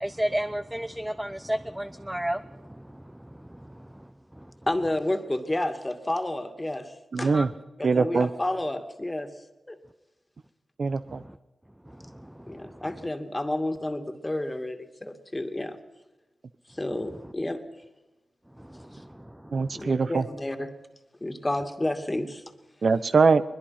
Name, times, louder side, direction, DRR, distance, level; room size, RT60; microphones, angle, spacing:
voice 1, 0.0-2.4 7.3-7.5 12.2-12.3 18.7-18.8 19.7-19.9, right 1 dB, 10° right, 11 dB, 0.7 m, -30 dB
voice 2, 4.7-7.3 7.8-9.3 9.7-9.8 12.5-15.8 16.7-17.6 19.7-20.7 21.2-22.4, left 1 dB, 20° left, 7 dB, 2.4 m, -30 dB
voice 3, 7.1-7.5 7.8-8.3 10.8-11.2 19.5-20.2 22.8-23.4, right 4 dB, 65° right, 12 dB, 0.9 m, -22 dB
21.5 x 21.5 x 5.9 m, 1.1 s
cardioid pair, 45°, 0 cm